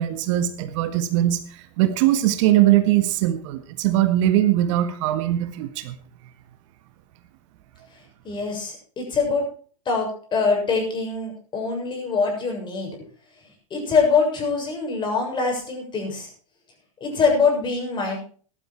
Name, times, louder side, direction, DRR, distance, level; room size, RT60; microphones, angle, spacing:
voice 1, 0.0-5.9, right 13 dB, 65° right, 9 dB, 1.7 m, -21 dB
voice 2, 8.2-9.4 9.9-12.9 13.7-16.3 17.0-18.2, left 4 dB, 25° left, 1 dB, 7.1 m, -23 dB
15.5 x 12.0 x 4.6 m, 0.43 s
supercardioid pair, 120°, 17 cm